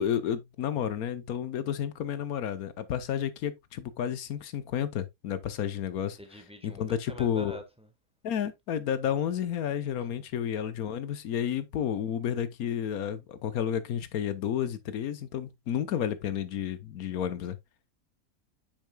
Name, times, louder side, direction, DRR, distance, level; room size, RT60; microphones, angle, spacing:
voice 1, 0.0-6.2 6.6-7.6 8.2-17.6, left 9 dB, 70° left, 1.3 m, -31 dB
voice 2, 6.2-7.9 10.0-10.2, left 1 dB, 5° right, 1.0 m, -45 dB
8.4 x 6.4 x 2.3 m
omnidirectional pair, 1.6 m